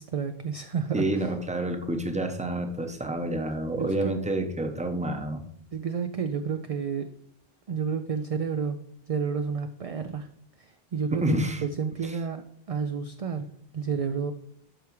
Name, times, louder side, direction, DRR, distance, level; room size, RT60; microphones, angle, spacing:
voice 1, 0.0-1.0 3.8-4.1 5.7-7.1 7.7-8.8 9.1-10.3 10.6-13.5 13.7-14.3, right 6 dB, 55° right, 8 dB, 0.4 m, -30 dB
voice 2, 0.9-5.4 11.1-11.6 12.0-12.2, right 1 dB, 10° right, 6 dB, 0.7 m, -29 dB
12.5 x 4.7 x 3.2 m, 0.69 s
omnidirectional pair, 1.1 m